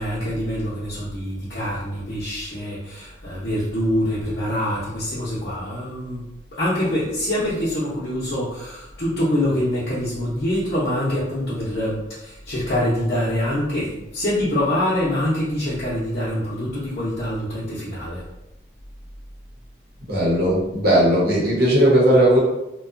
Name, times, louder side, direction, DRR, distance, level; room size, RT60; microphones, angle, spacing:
voice 1, 0.0-6.2 6.6-18.2, left 1 dB, 60° left, -11 dB, 0.7 m, -25 dB
voice 2, 20.1-22.4, right 1 dB, 60° right, -5 dB, 0.9 m, -17 dB
2.6 x 2.2 x 2.4 m, 0.91 s
head